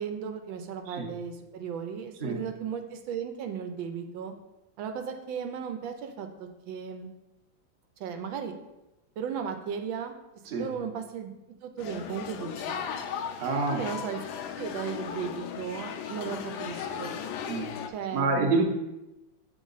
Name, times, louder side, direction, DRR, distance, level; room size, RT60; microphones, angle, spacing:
voice 1, 0.0-4.3 4.8-7.1 8.0-8.5 9.2-10.1 10.6-11.3 11.6-12.8 13.7-14.2 14.6-17.2 17.9-18.7, right 7 dB, 85° right, 6 dB, 1.4 m, -36 dB
sound 1, 11.8-17.9, left 8 dB, 85° left, 1.3 m, -36 dB
voice 2, 13.4-13.8 17.5-17.7 18.1-18.7, right 3 dB, 45° right, 1 dB, 0.8 m, -27 dB
7.3 x 3.7 x 3.9 m, 0.97 s
omnidirectional pair, 2.1 m